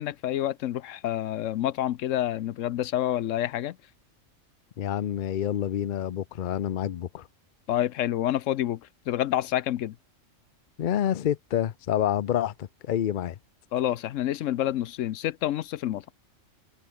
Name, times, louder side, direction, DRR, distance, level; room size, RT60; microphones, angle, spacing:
voice 1, 0.0-3.8 7.7-8.8 9.1-9.9 13.7-16.0, left 12 dB, 75° left, 1.0 m, -28 dB
voice 2, 4.8-7.3 10.8-13.4, left 10 dB, 55° left, 0.6 m, -28 dB
omnidirectional pair, 1.4 m